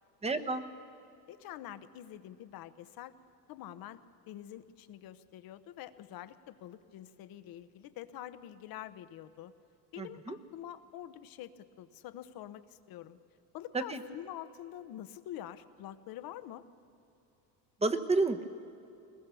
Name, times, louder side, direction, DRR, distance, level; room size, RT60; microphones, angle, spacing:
voice 1, 0.2-0.6 10.0-10.4 13.7-14.0 17.8-18.4, right 3 dB, 15° right, 8 dB, 1.0 m, -30 dB
voice 2, 1.3-3.1 3.5-4.0 4.3-9.5 9.9-13.2 13.5-16.6, left 12 dB, 60° left, 12 dB, 1.0 m, -46 dB
21.5 x 19.5 x 7.0 m, 2.8 s
cardioid pair, 125°, 39 cm